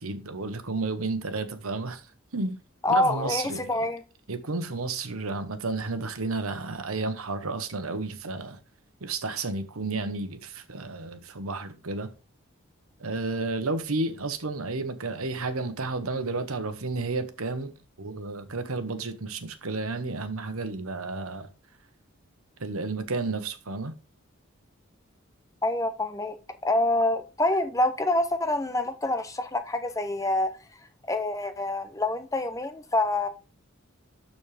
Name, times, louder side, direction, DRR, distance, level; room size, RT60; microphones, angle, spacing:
voice 1, 0.0-2.1 2.3-2.6 2.9-3.9 4.3-8.6 9.0-12.1 13.0-17.7 18.0-21.5 22.6-23.9, right 3 dB, 85° right, 1.1 m, -32 dB
voice 2, 2.8-4.0 25.6-26.4 26.6-30.5 31.1-33.3, left 2 dB, 15° left, 0.7 m, -26 dB
12.5 x 4.3 x 3.4 m
head